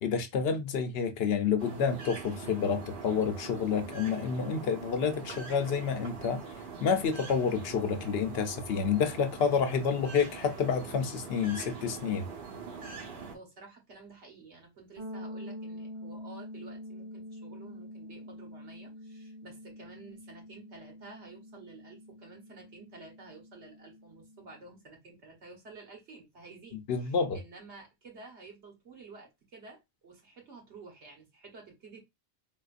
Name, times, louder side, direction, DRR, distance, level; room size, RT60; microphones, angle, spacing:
voice 1, 0.0-6.4 6.8-12.3 26.9-27.4, left 6 dB, 70° left, 0.8 m, -29 dB
sound 1, 1.6-13.4, right 5 dB, 55° right, 1.0 m, -43 dB
voice 2, 13.3-32.0, right 3 dB, 80° right, 1.5 m, -51 dB
sound 2, 15.0-24.7, left 1 dB, 25° right, 0.9 m, -46 dB
3.8 x 2.5 x 2.4 m
omnidirectional pair, 1.1 m